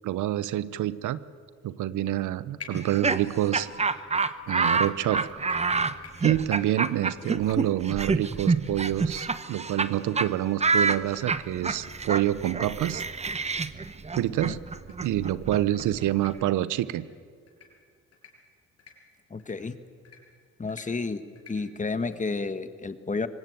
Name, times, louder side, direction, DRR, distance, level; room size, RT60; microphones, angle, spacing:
voice 1, 0.0-1.2 1.6-3.7 4.5-5.4 6.2-13.0 14.1-14.6 15.0-17.1, right 13 dB, 80° right, 17 dB, 0.8 m, -27 dB
sound 1, 2.6-3.4 3.9-10.0 10.2-10.3 10.6-10.7 11.1-11.2 11.5-11.6 12.1-12.2 12.5-12.6 13.1-13.2 14.2-14.3 14.7-14.9 15.4-15.6 16.1-16.3 16.8-17.0 17.5-17.7 18.1-18.3 18.8-18.9 19.4-19.5 20.0-20.2 20.7-20.9 21.4-21.5 22.0-22.2, left 7 dB, 55° left, 6.6 m, -49 dB
Laughter, 2.7-9.9 10.2-10.3 10.6-16.3, right 4 dB, 20° right, 1.0 m, -28 dB
voice 2, 19.3-19.8 20.6-21.2 21.5-23.3, left 4 dB, 25° left, 11 dB, 1.4 m, -31 dB
24.0 x 18.5 x 9.4 m, 2.1 s
cardioid pair, 90°, 30 cm